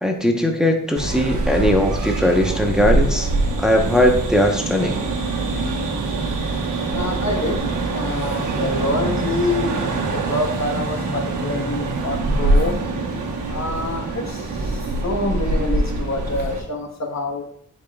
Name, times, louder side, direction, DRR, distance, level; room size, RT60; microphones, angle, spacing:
voice 1, 0.0-3.3 3.6-4.9, left 1 dB, ahead, 2 dB, 1.0 m, -19 dB
sound 1, 1.0-16.6, right 2 dB, 65° right, 1.3 m, -24 dB
voice 2, 6.9-7.6 7.9-12.8 13.5-17.4, left 2 dB, 55° left, 2 dB, 1.3 m, -26 dB
10.0 x 5.2 x 2.4 m, 0.65 s
cardioid pair, 70°, 33 cm